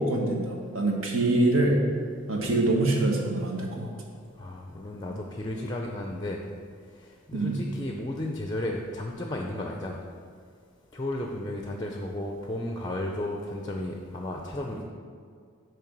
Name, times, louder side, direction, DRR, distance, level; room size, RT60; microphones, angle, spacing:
voice 1, 0.0-1.8 2.3-3.9 7.3-7.6, right 2 dB, 75° right, 0 dB, 1.2 m, -25 dB
voice 2, 4.4-6.4 7.3-10.0 10.9-14.8, left 1 dB, 20° left, 1 dB, 0.4 m, -33 dB
8.7 x 3.3 x 5.9 m, 2.2 s
head